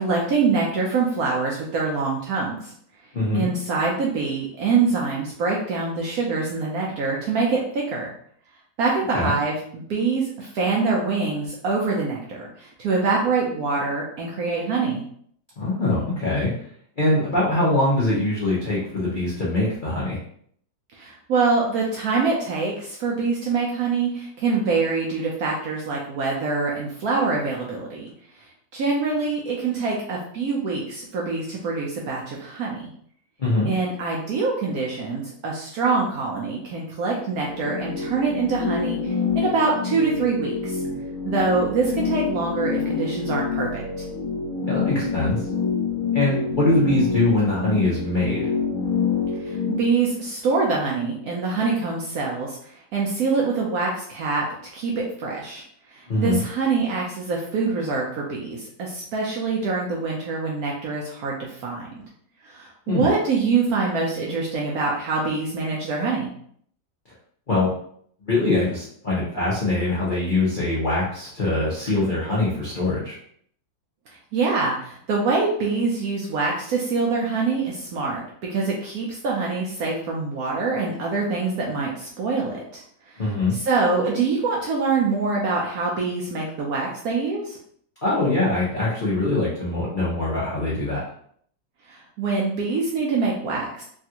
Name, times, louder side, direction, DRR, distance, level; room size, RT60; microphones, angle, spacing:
voice 1, 0.0-2.7 3.3-8.1 8.8-15.0 20.9-28.1 28.7-32.9 33.6-40.8 41.3-44.0 49.4-54.5 54.7-55.6 55.9-61.9 62.4-66.3 74.3-78.2 78.5-83.2 83.5-87.6 91.9-93.8, right 4 dB, 70° right, -2 dB, 0.9 m, -25 dB
voice 2, 3.1-3.5 9.1-9.3 15.6-16.5 17.0-20.2 33.4-33.7 44.6-45.4 46.1-48.5 56.1-56.4 62.9-63.1 67.5-67.7 68.3-73.2 83.2-83.5 88.0-91.0, left 2 dB, 75° left, -7 dB, 0.4 m, -23 dB
sound 1, 37.2-49.8, left 5 dB, 50° left, 1.0 m, -27 dB
3.4 x 2.4 x 2.8 m, 0.62 s
omnidirectional pair, 2.0 m